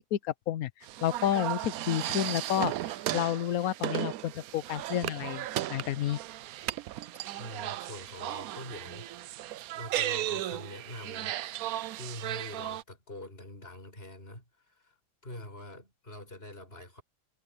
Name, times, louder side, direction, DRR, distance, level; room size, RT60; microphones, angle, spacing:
voice 1, 0.1-0.7 1.0-6.2, left 11 dB, 65° left, 0.9 m, -30 dB
sound 1, 0.8-12.8, right 14 dB, 80° right, 0.8 m, -35 dB
voice 2, 7.3-9.1 9.7-11.4 12.0-15.0 15.2-17.0, left 1 dB, 30° left, 7.3 m, -44 dB
omnidirectional pair, 2.1 m